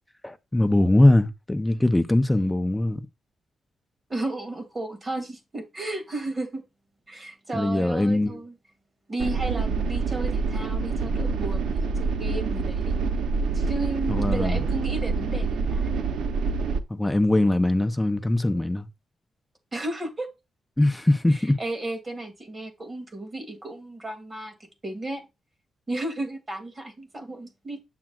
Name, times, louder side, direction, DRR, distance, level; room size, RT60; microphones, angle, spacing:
voice 1, 0.2-3.0 7.5-8.4 14.1-14.6 16.9-18.9 20.8-21.6, left 1 dB, 10° left, 0.6 m, -21 dB
voice 2, 4.1-6.6 7.1-8.5 9.1-13.0 13.5-16.1 19.7-20.3 21.3-24.6 24.8-25.2 25.9-27.8, right 2 dB, 20° right, 2.2 m, -33 dB
sound 1, 9.2-16.8, right 4 dB, 90° right, 0.7 m, -26 dB
8.7 x 7.2 x 2.4 m
cardioid pair, 105°, 0 cm